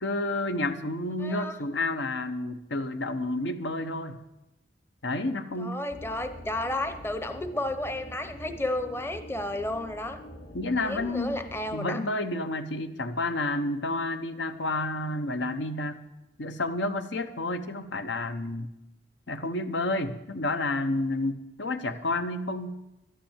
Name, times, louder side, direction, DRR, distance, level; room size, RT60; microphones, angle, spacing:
voice 1, 0.0-4.2 5.0-5.8 10.5-11.4 11.7-16.0 16.4-18.7 19.3-22.8, left 2 dB, 85° left, 9 dB, 1.0 m, -30 dB
voice 2, 1.2-1.5 5.6-10.2 10.8-12.0 21.8-22.0, left 1 dB, 15° left, 9 dB, 0.6 m, -32 dB
sound 1, 5.9-11.8, equal, 50° left, 1.1 m, -45 dB
12.0 x 10.0 x 7.3 m, 0.94 s
head